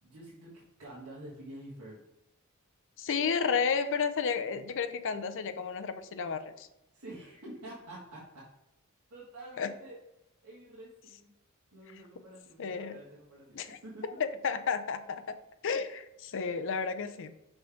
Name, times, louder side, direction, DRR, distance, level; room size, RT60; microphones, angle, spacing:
voice 1, 0.0-2.0 6.9-8.4 9.1-9.9 10.4-11.3 11.7-14.0, right 1 dB, 75° right, -7 dB, 1.7 m, -48 dB
voice 2, 3.0-6.7 9.6-9.7 12.6-13.0 13.5-13.8 14.2-15.4 15.6-17.3, left 6 dB, 60° left, 10 dB, 0.5 m, -32 dB
5.8 x 5.3 x 3.5 m, 0.89 s
head